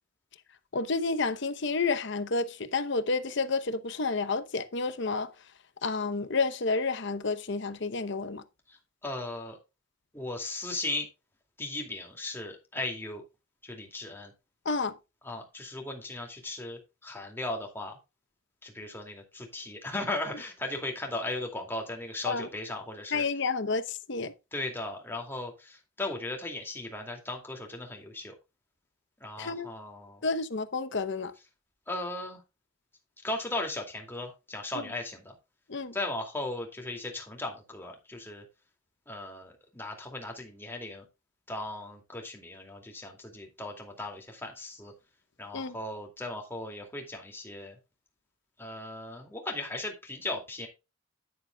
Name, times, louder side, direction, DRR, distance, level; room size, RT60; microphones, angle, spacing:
voice 1, 0.7-5.3 5.8-8.4 14.6-14.9 22.2-22.5 23.1-24.3 29.4-29.7 30.2-31.3 34.7-34.9 35.7-35.9 45.5-45.8, left 4 dB, 55° left, 0.8 m, -30 dB
voice 2, 8.7-9.6 10.1-11.1 11.6-13.2 13.6-14.3 15.2-18.0 18.6-23.3 24.5-28.3 29.2-30.2 31.9-32.4 33.2-35.3 35.9-38.4 39.1-41.0 41.5-44.9 45.4-47.8 48.6-50.7, left 2 dB, 10° left, 2.4 m, -37 dB
10.5 x 9.3 x 2.3 m
head